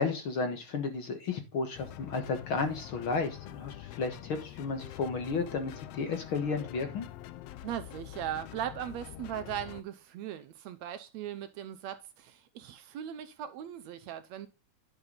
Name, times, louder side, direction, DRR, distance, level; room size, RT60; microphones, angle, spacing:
voice 1, 0.0-7.1, left 4 dB, 50° left, 1.8 m, -33 dB
sound 1, 1.7-9.8, left 14 dB, 80° left, 1.4 m, -46 dB
voice 2, 7.6-14.5, right 10 dB, 75° right, 1.9 m, -39 dB
10.5 x 6.6 x 4.0 m
omnidirectional pair, 3.5 m